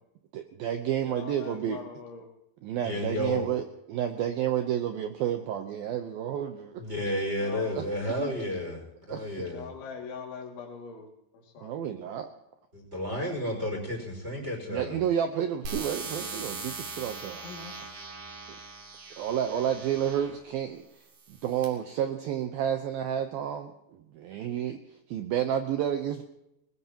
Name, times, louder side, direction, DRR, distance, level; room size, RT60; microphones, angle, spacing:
voice 1, 0.3-1.8 2.6-6.8 7.8-8.3 9.1-9.5 11.6-12.3 14.7-17.5 19.2-26.2, right 10 dB, 75° right, 6 dB, 2.3 m, -31 dB
voice 2, 1.1-2.3 7.4-7.7 9.5-11.8 17.4-17.7 19.5-19.7 24.4-24.5, left 5 dB, 85° left, 2 dB, 4.9 m, -42 dB
voice 3, 2.8-3.5 6.8-9.7 12.7-15.0, left 1 dB, 15° right, 0 dB, 5.4 m, -32 dB
sound 1, 15.7-20.4 21.1-21.7, right 3 dB, 55° right, 4.4 m, -40 dB
21.0 x 20.5 x 3.0 m, 0.85 s
omnidirectional pair, 5.2 m